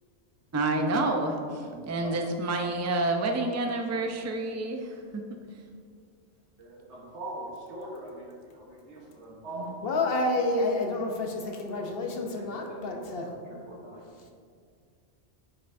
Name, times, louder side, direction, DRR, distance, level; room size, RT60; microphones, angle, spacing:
voice 1, 0.5-5.4, right 2 dB, 25° right, 3 dB, 0.3 m, -29 dB
voice 2, 1.7-2.1 6.9-7.4 7.7-8.1 8.9-9.7 11.8-11.9 12.6-13.0 13.4-14.0, right 1 dB, 90° right, -1 dB, 1.4 m, -41 dB
voice 3, 9.8-13.3, left 2 dB, 60° left, 2 dB, 1.0 m, -29 dB
9.3 x 5.5 x 2.6 m, 2.2 s
omnidirectional pair, 1.1 m